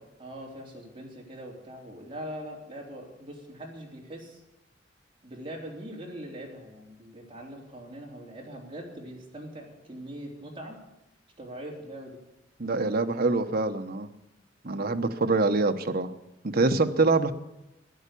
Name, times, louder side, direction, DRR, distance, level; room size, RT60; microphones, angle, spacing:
voice 1, 0.2-4.4 5.2-10.8 11.4-12.2, equal, 30° right, -2 dB, 3.5 m, -42 dB
voice 2, 12.6-14.1 14.6-16.1 16.4-17.3, right 3 dB, 55° right, 7 dB, 1.0 m, -25 dB
13.0 x 11.0 x 8.4 m, 0.95 s
head